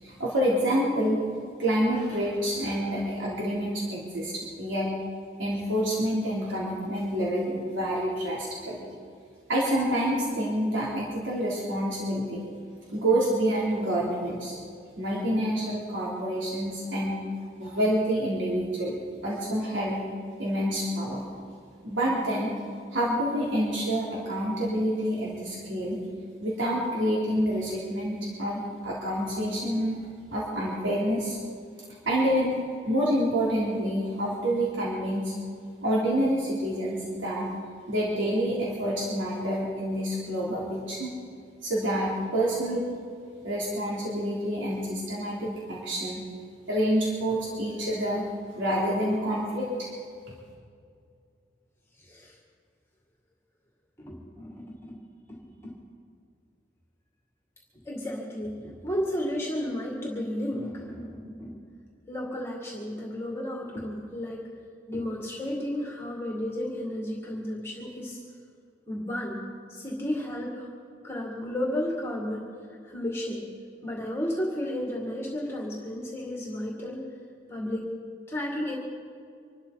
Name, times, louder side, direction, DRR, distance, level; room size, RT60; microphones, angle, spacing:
voice 1, 0.0-1.2 1.6-4.9 5.4-8.8 9.5-12.4 12.9-14.6 15.0-17.2 17.6-19.0 19.2-20.0 20.4-21.2 21.8-22.5 22.9-26.0 26.4-30.0 30.3-31.4 32.0-32.5 32.8-35.3 35.8-37.5 37.9-41.1 41.6-42.8 43.4-46.2 46.7-49.9, equal, 90° right, -6 dB, 3.4 m, -27 dB
voice 2, 52.0-52.4 54.0-54.9 55.3-55.7 57.8-61.6 62.1-64.4 64.9-68.2 68.9-69.4 69.7-70.7 71.0-72.5 72.8-73.4 73.8-77.1 77.5-77.9 78.3-78.8, left 1 dB, 15° left, -2 dB, 2.1 m, -33 dB
25.5 x 12.5 x 4.1 m, 2.3 s
head